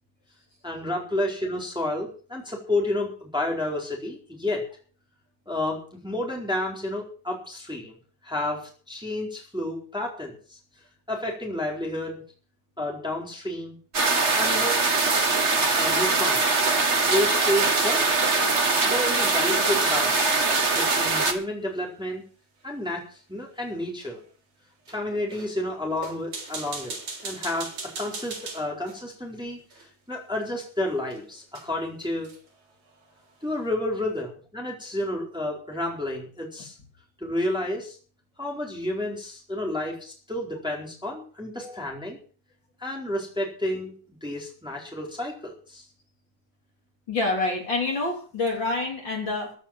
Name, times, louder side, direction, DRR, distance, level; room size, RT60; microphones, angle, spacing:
voice 1, 0.6-4.7 5.5-8.0 8.2-10.6 11.1-12.2 12.8-13.8 14.4-14.8 15.7-16.5 17.1-18.1 18.8-22.2 22.6-24.2 24.9-27.0 27.2-32.3 33.4-36.7 37.2-38.0 38.4-42.2 42.8-45.8, left 1 dB, ahead, -1 dB, 4.1 m, -30 dB
sound 1, 13.9-21.3, right 3 dB, 30° right, 1.5 m, -22 dB
sound 2, 18.4-21.1 24.0-24.1 24.9-25.0 25.3-25.5 26.0-29.0 29.7-29.9 31.1-31.2 31.6-31.7 32.0-32.5, right 4 dB, 75° right, 5.0 m, -38 dB
voice 2, 47.1-49.5, left 3 dB, 40° left, 0 dB, 4.1 m, -27 dB
15.5 x 8.8 x 7.4 m, 0.42 s
omnidirectional pair, 3.3 m